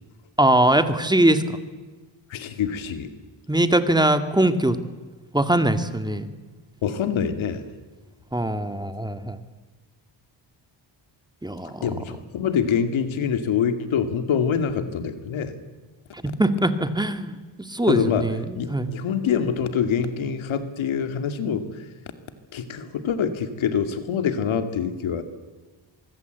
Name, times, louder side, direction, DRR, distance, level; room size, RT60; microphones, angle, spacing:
voice 1, 0.4-1.6 3.5-4.8 5.3-6.3 8.3-9.4 11.4-11.9 16.1-17.4 17.7-18.9, right 1 dB, 10° right, 9 dB, 2.0 m, -21 dB
voice 2, 2.3-3.1 6.8-7.6 11.8-15.5 17.9-21.8 22.5-25.2, left 7 dB, 90° left, 9 dB, 2.5 m, -25 dB
24.5 x 24.0 x 8.1 m, 1.3 s
cardioid pair, 100°, 46 cm